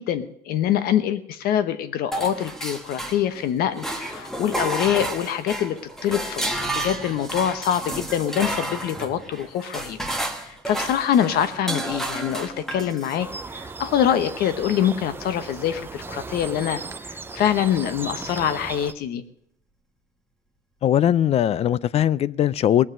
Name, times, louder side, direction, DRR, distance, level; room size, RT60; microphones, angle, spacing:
voice 1, 0.0-10.0 10.4-19.2, left 10 dB, 75° left, 1.0 m, -25 dB
sound 1, 2.1-3.4 3.8-13.2, right 1 dB, 5° left, 1.3 m, -31 dB
sound 2, 13.2-18.9, right 4 dB, 15° right, 0.6 m, -36 dB
voice 2, 20.8-22.9, left 10 dB, 40° left, 0.4 m, -20 dB
19.0 x 7.4 x 6.2 m
cardioid pair, 165°, 16 cm